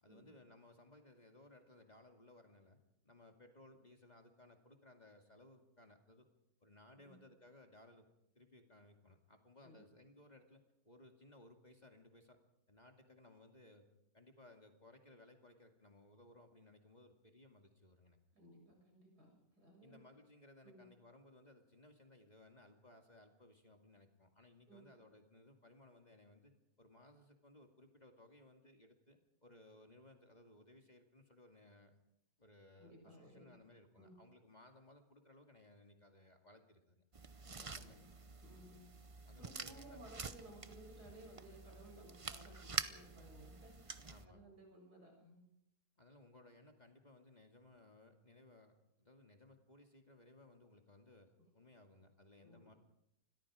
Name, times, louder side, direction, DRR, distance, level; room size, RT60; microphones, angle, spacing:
voice 1, 0.0-2.8 3.0-6.3 6.6-8.1 8.3-12.4 12.7-13.9 14.1-18.2 19.8-26.5 26.8-32.0 32.4-37.0 37.4-38.0 39.3-40.0 44.0-44.5 46.0-52.7, left 2 dB, 25° left, 3 dB, 2.4 m, -62 dB
voice 2, 18.3-20.0 20.6-20.9 24.7-24.8 32.8-33.6 34.0-34.2 37.4-38.1 38.4-38.9 39.4-45.4 52.4-52.8, right 1 dB, 75° right, 1 dB, 7.8 m, -59 dB
sound 1, 37.1-44.3, right 4 dB, 30° right, 0.6 m, -47 dB
28.5 x 21.5 x 4.9 m, 0.78 s
omnidirectional pair, 1.7 m